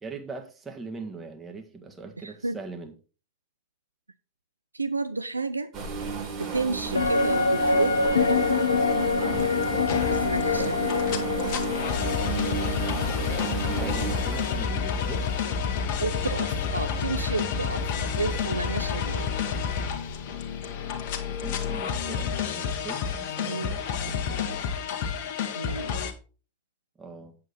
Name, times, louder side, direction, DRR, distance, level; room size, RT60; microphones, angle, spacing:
voice 1, 0.0-2.9 13.7-15.3 21.3-24.5 27.0-27.3, right 3 dB, 15° right, 4 dB, 1.7 m, -41 dB
voice 2, 2.2-2.6 4.7-5.7 6.4-8.0 10.1-11.1 16.0-19.3 23.5-23.7 25.6-26.0, right 3 dB, 80° right, 13 dB, 0.5 m, -31 dB
sound 1, 5.7-15.9 16.6-16.8 17.3-17.5 18.3-18.8 19.1-19.2 20.1-20.2, right 5 dB, 35° right, 4.6 m, -33 dB
sound 2, 6.9-16.5 16.8-16.9, left 4 dB, 75° left, 0.8 m, -27 dB
sound 3, 9.3-26.1, left 6 dB, 50° left, 1.3 m, -30 dB
7.9 x 7.7 x 4.1 m, 0.35 s
figure-of-eight pair, 90°, 0 cm